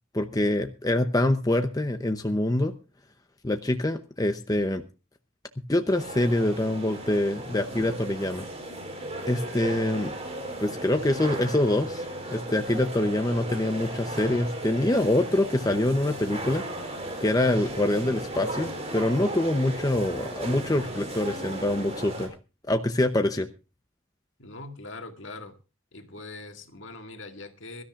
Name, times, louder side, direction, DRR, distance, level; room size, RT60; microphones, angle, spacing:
voice 1, 0.1-2.7 3.4-4.8 5.7-8.4 9.3-10.1 10.6-12.0 12.3-16.6 17.2-22.3 22.7-23.5, left 1 dB, 20° left, 7 dB, 0.7 m, -25 dB
sound 1, 5.9-22.3, right 1 dB, 30° right, 4.0 m, -36 dB
voice 2, 24.4-25.6 25.9-27.8, left 2 dB, 60° left, 5 dB, 2.0 m, -42 dB
23.0 x 13.0 x 2.5 m, 0.31 s
head